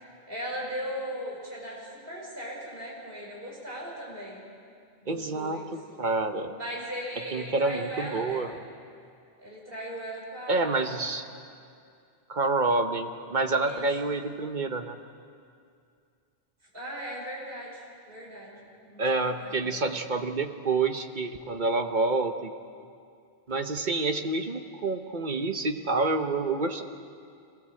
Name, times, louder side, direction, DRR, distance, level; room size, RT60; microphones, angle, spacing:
voice 1, 0.3-4.4 5.0-5.7 6.5-8.4 9.4-11.0 13.6-13.8 16.7-19.8, equal, 65° right, -3 dB, 5.9 m, -38 dB
voice 2, 5.1-5.6 6.0-6.6 7.3-8.5 10.5-11.2 12.3-15.0 19.0-22.5 23.5-26.8, right 3 dB, 50° right, 7 dB, 1.2 m, -28 dB
23.0 x 17.0 x 7.8 m, 2.4 s
omnidirectional pair, 1.0 m